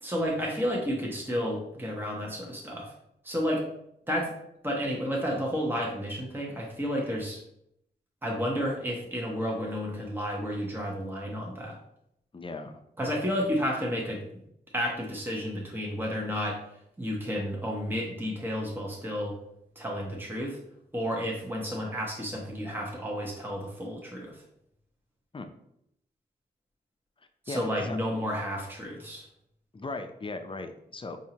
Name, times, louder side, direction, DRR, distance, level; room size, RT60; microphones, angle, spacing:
voice 1, 0.0-2.9 3.2-3.6 4.1-4.3 4.6-7.4 8.2-11.8 13.0-14.4 14.7-16.6 17.0-19.4 19.8-20.6 20.9-24.4 27.4-29.3, equal, 10° right, -2 dB, 1.0 m, -31 dB
voice 2, 12.3-12.7 25.3-25.5 27.5-28.0 29.7-31.2, left 3 dB, 30° left, 7 dB, 0.5 m, -38 dB
4.7 x 2.6 x 2.9 m, 0.76 s
cardioid pair, 45°, 18 cm